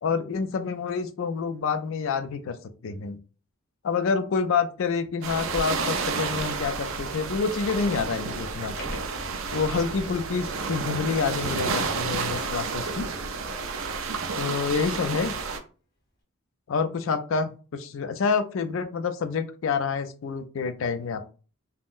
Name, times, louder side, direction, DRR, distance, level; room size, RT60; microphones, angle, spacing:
voice 1, 0.0-2.6 2.8-3.2 3.8-8.8 9.5-13.1 14.4-15.3 16.7-21.3, left 5 dB, 65° left, 10 dB, 0.4 m, -28 dB
Sliding door, 4.3-4.4 5.1-5.2 5.6-15.6, equal, 45° left, 0.8 m, -47 dB
sound 1, 5.2-15.6, right 4 dB, 65° right, 0.4 m, -31 dB
3.5 x 2.1 x 2.4 m, 0.36 s
head